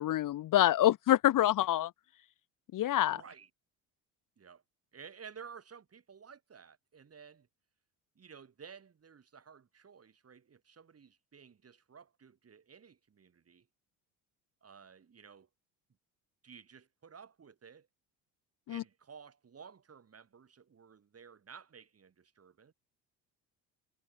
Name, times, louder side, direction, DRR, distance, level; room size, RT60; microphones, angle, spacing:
voice 1, 0.0-1.9 2.7-3.2 18.7-18.8, left 13 dB, 50° left, 1.0 m, -26 dB
voice 2, 3.0-3.5 4.4-4.6 4.9-7.5 8.2-13.7 14.6-15.5 16.4-17.9 18.7-22.7, right 6 dB, 35° right, 7.1 m, -54 dB
supercardioid pair, 80°, 41 cm